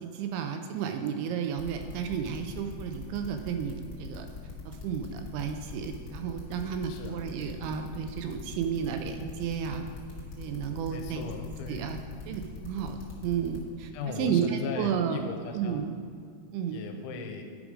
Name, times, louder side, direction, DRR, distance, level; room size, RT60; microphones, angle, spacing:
voice 1, 0.0-4.3 4.7-9.8 10.4-11.3 11.7-12.0 12.3-15.2 15.5-16.0 16.5-16.8, right 7 dB, 80° right, 6 dB, 2.8 m, -32 dB
sound 1, 1.6-13.7, left 5 dB, 60° left, 1.4 m, -42 dB
voice 2, 10.9-11.9 13.9-15.9 16.7-17.4, left 5 dB, 80° left, 4 dB, 3.0 m, -38 dB
11.0 x 5.1 x 4.9 m, 2.3 s
omnidirectional pair, 5.5 m